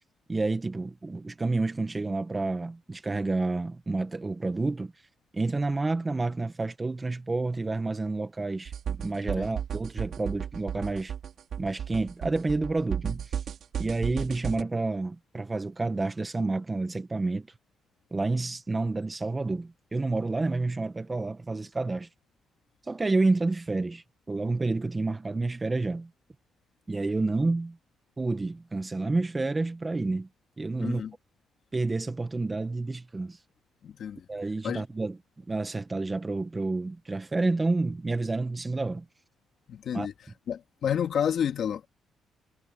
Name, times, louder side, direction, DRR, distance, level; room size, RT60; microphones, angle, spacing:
voice 1, 0.3-4.9 5.3-11.1 11.6-13.2 13.8-17.5 18.1-22.1 22.9-26.1 26.9-27.8 28.2-30.3 30.6-31.0 31.7-33.4 34.3-35.2 35.5-39.1 39.9-40.1, right 3 dB, 20° right, 1.8 m, -29 dB
sound 1, 8.7-14.6, right 8 dB, 65° right, 5.8 m, -34 dB
voice 2, 30.8-31.1 33.8-34.2 34.6-34.8 39.7-40.1 40.5-41.9, left 8 dB, 60° left, 3.0 m, -30 dB
cardioid pair, 90°, 0 cm